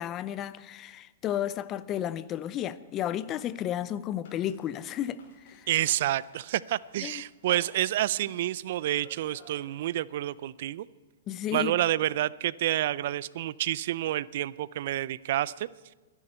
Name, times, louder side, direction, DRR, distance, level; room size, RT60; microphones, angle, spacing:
voice 1, 0.0-5.7 7.0-7.2 11.3-11.7, left 11 dB, 30° left, 0.6 m, -33 dB
sound 1, 2.6-10.4, left 4 dB, 60° left, 5.2 m, -56 dB
voice 2, 5.7-10.9 11.5-15.7, right 13 dB, 60° right, 0.4 m, -29 dB
23.5 x 11.0 x 4.4 m
hypercardioid pair, 120°, 0 cm